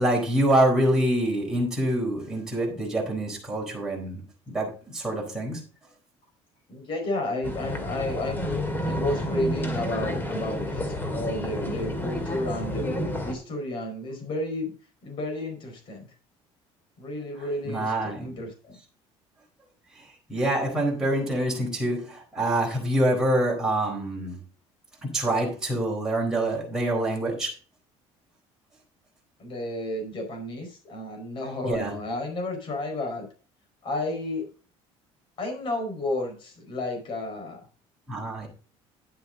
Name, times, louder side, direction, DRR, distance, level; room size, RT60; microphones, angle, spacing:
voice 1, 0.0-5.6 17.6-18.4 19.9-20.0 20.3-24.4 25.0-27.5 31.6-31.9 38.1-38.5, right 1 dB, 5° right, -3 dB, 4.1 m, -26 dB
voice 2, 6.7-14.7 15.0-16.1 17.0-18.8 29.4-33.3 33.8-34.5 35.4-37.6, left 2 dB, 45° left, 3 dB, 4.7 m, -32 dB
sound 1, 7.4-13.3, equal, 15° left, 2.1 m, -30 dB
10.5 x 7.9 x 3.8 m, 0.38 s
cardioid pair, 140°, 12 cm